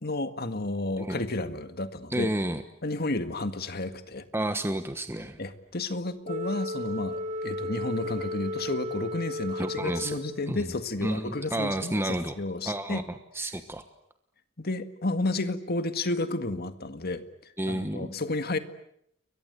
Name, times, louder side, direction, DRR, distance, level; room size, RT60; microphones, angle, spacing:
voice 1, 0.0-2.3 2.8-4.2 5.4-13.0 14.6-18.6, left 2 dB, 50° left, 10 dB, 1.9 m, -32 dB
voice 2, 2.1-2.6 4.3-5.4 9.6-10.2 10.5-10.7 11.0-12.4 12.6-13.8 17.6-18.1, right 1 dB, 10° right, 8 dB, 1.2 m, -31 dB
Wind instrument woodwind instrument, 6.2-10.6, left 1 dB, 35° right, 1.6 m, -34 dB
30.0 x 23.0 x 8.2 m, 0.75 s
head